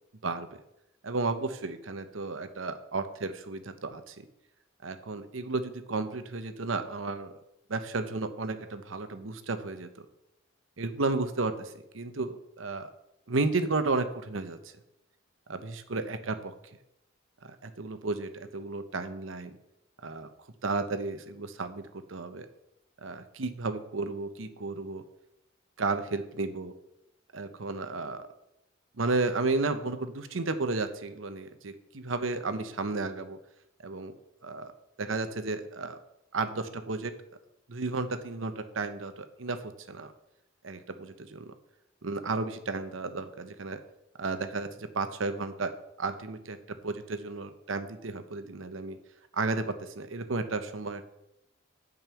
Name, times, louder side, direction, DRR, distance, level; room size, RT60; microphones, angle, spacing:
voice 1, 1.0-4.2 4.8-7.4 7.7-10.0 10.8-12.9 13.3-14.6 15.5-16.5 17.4-19.6 20.0-20.3 20.6-22.5 23.0-25.0 25.8-26.7 27.3-28.3 29.0-33.4 33.8-34.2 34.4-34.7 35.0-36.0 36.3-37.1 37.7-40.1 40.6-41.5 42.0-43.8 44.2-45.7 46.0-46.6 46.8-49.0 49.3-51.0, right 3 dB, 80° right, 10 dB, 0.9 m, -33 dB
9.0 x 5.4 x 6.9 m, 0.85 s
head